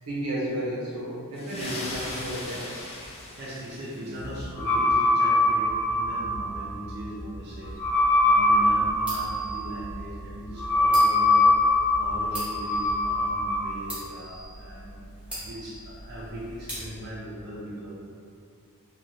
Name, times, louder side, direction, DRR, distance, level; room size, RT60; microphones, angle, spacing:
voice 1, 0.0-2.6, right 1 dB, 80° right, -6 dB, 0.8 m, -32 dB
sound 1, 1.4-4.4, left 2 dB, 25° left, 0.4 m, -39 dB
voice 2, 3.4-7.7 8.2-11.5 12.0-15.0 15.4-17.9, right 1 dB, 50° right, -8 dB, 0.6 m, -39 dB
sound 2, 4.2-13.7, left 2 dB, 85° left, 0.7 m, -23 dB
sound 3, 7.6-17.1, right 1 dB, 5° right, 0.9 m, -42 dB
3.0 x 2.3 x 2.7 m, 2.3 s
head